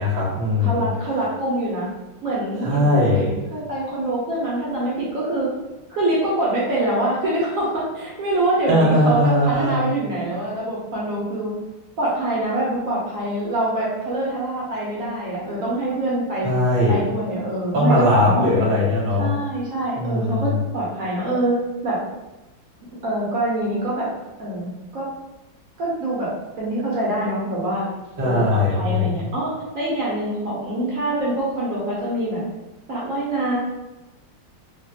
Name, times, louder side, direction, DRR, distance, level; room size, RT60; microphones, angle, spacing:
voice 1, 0.0-0.9 2.6-3.4 8.7-9.8 16.4-17.0 17.7-19.3 20.0-20.6 28.2-29.1, left 1 dB, 85° right, -7 dB, 0.4 m, -19 dB
voice 2, 0.6-1.9 2.2-5.5 5.9-11.6 12.0-16.5 16.9-18.8 19.2-22.0 23.0-24.1 24.4-25.1 25.8-26.3 26.6-27.9 28.2-32.4 32.9-33.6, right 1 dB, 65° right, -6 dB, 0.8 m, -25 dB
3.2 x 2.2 x 2.6 m, 1.0 s
omnidirectional pair, 2.1 m